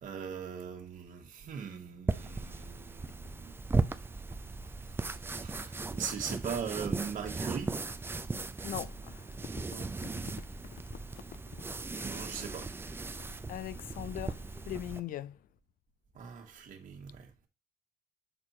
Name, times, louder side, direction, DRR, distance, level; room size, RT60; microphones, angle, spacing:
voice 1, 0.0-3.6 5.4-7.8 9.7-9.9 12.0-12.7 16.1-17.5, right 7 dB, 50° right, 1.5 m, -40 dB
sound 1, 2.1-15.0, right 3 dB, 15° right, 0.4 m, -37 dB
voice 2, 8.6-9.4 9.8-9.9 10.2-10.3 11.6-11.7 13.5-15.4, left 12 dB, 55° left, 0.5 m, -40 dB
6.7 x 4.4 x 4.3 m
cardioid pair, 110°, 17 cm